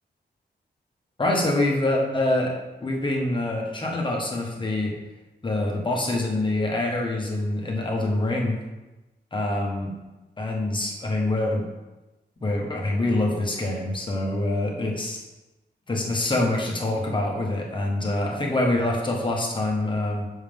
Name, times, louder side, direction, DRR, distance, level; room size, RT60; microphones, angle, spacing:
voice 1, 1.2-2.5 2.8-4.9 5.4-8.6 9.3-9.9 10.4-11.6 12.4-15.2 15.9-20.2, left 2 dB, 25° left, -1 dB, 1.4 m, -25 dB
7.4 x 6.4 x 3.6 m, 1.1 s
wide cardioid pair, 155°, 18 cm